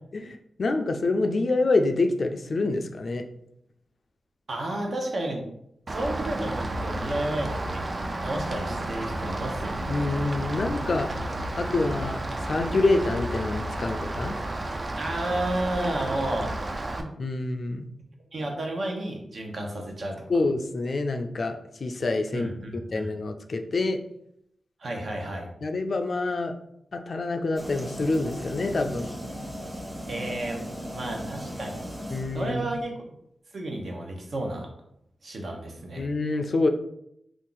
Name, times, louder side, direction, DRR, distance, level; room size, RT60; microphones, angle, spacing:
voice 1, 0.2-3.2 9.9-11.1 11.6-14.4 17.2-17.9 20.3-21.6 21.8-24.0 25.6-26.5 26.9-29.1 32.1-32.8 36.0-36.7, left 2 dB, 60° left, 6 dB, 0.3 m, -26 dB
voice 2, 4.5-5.4 5.9-7.8 8.2-10.2 15.0-16.5 18.3-20.2 22.3-23.1 24.8-25.5 30.1-30.6 30.9-31.8 32.3-32.9 33.5-34.7 35.2-36.1, right 1 dB, 65° right, 1 dB, 0.8 m, -32 dB
Rain, 5.9-17.0, right 1 dB, 40° right, 0.4 m, -32 dB
sound 1, 27.6-32.8, equal, 15° right, 0.7 m, -37 dB
2.6 x 2.4 x 3.8 m, 0.75 s
cardioid pair, 65°, 0 cm